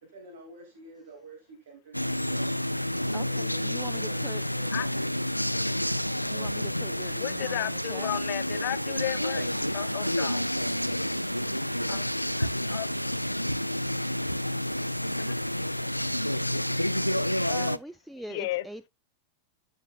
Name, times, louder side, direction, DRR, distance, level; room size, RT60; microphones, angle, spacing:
voice 1, 0.0-2.5 3.2-5.0 6.3-6.7 9.1-9.5, right 2 dB, 60° right, 2.4 m, -49 dB
sound 1, 1.9-17.8, equal, 90° left, 0.4 m, -29 dB
voice 2, 3.1-4.5 6.2-8.2 17.1-18.9, right 1 dB, 5° right, 0.4 m, -43 dB
voice 3, 7.2-9.5 9.7-10.4 11.9-12.1 12.4-12.9 18.3-18.6, left 18 dB, 50° left, 0.8 m, -33 dB
13.5 x 6.2 x 2.4 m
figure-of-eight pair, 90°, 0 cm